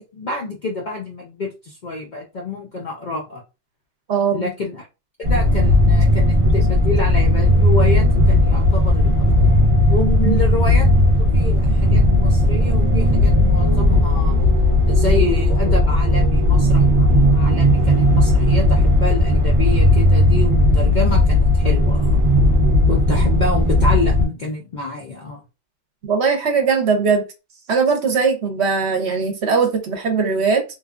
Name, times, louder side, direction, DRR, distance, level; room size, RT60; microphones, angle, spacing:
voice 1, 0.0-3.4 4.3-4.9 5.2-9.5 9.9-14.4 14.9-22.2 22.9-25.4, left 3 dB, 60° left, 0.5 m, -27 dB
voice 2, 4.1-4.5 10.2-10.4 26.0-27.2 27.7-30.6, right 5 dB, 60° right, 0.9 m, -19 dB
Shadow King Temple, 5.2-24.3, left 1 dB, 35° right, 0.6 m, -15 dB
3.0 x 2.3 x 2.4 m
omnidirectional pair, 1.3 m